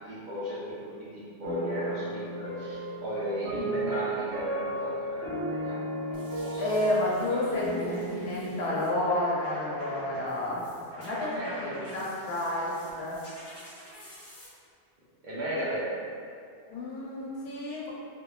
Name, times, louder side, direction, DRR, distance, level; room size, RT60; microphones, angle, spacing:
voice 1, 0.1-6.6 7.3-7.4 11.3-11.9 15.2-15.9, equal, 50° right, -9 dB, 0.6 m, -36 dB
sound 1, 1.4-10.6, right 1 dB, 70° right, 1.0 m, -35 dB
sound 2, 6.1-14.5, equal, 30° left, 0.6 m, -48 dB
voice 2, 6.6-10.7 11.0-13.2 16.7-17.9, left 1 dB, 70° left, -6 dB, 0.8 m, -30 dB
3.0 x 2.1 x 2.3 m, 2.3 s
omnidirectional pair, 1.1 m